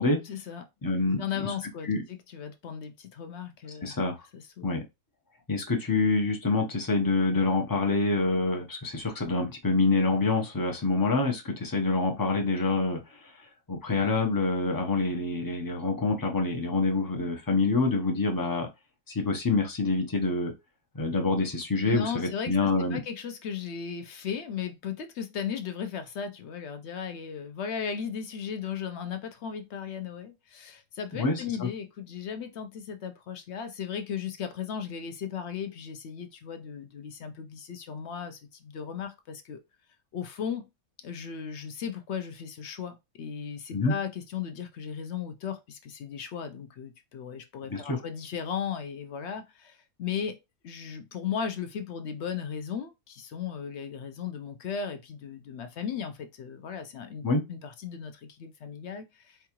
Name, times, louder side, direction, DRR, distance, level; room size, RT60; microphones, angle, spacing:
voice 1, 0.3-0.6 1.2-3.9 4.3-4.7 21.8-39.6 40.1-40.6 41.0-50.4 50.6-59.4, left 7 dB, 65° left, 0.7 m, -36 dB
voice 2, 0.8-1.5 1.9-2.0 3.8-4.2 4.6-4.8 5.5-18.7 19.1-20.5 20.9-23.0 31.1-31.7 43.7-43.9 47.7-48.0 57.2-57.4, left 3 dB, 25° left, 0.4 m, -26 dB
4.6 x 2.3 x 2.9 m
omnidirectional pair, 1.6 m